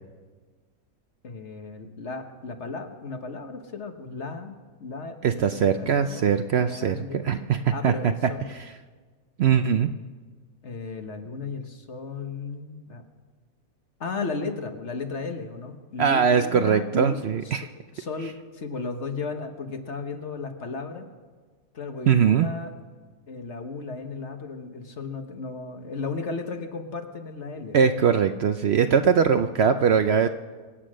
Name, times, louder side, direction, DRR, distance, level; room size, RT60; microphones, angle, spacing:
voice 1, 1.2-6.2 6.6-7.4 7.7-8.6 10.6-13.0 14.0-21.1 21.7-22.7 23.3-27.8, left 4 dB, 55° left, 6 dB, 1.5 m, -35 dB
voice 2, 5.2-8.1 8.5-8.7 9.4-9.9 16.0-17.7 22.1-22.5 27.7-30.3, right 7 dB, 60° right, 9 dB, 0.7 m, -21 dB
24.5 x 8.5 x 6.3 m, 1.5 s
omnidirectional pair, 1.5 m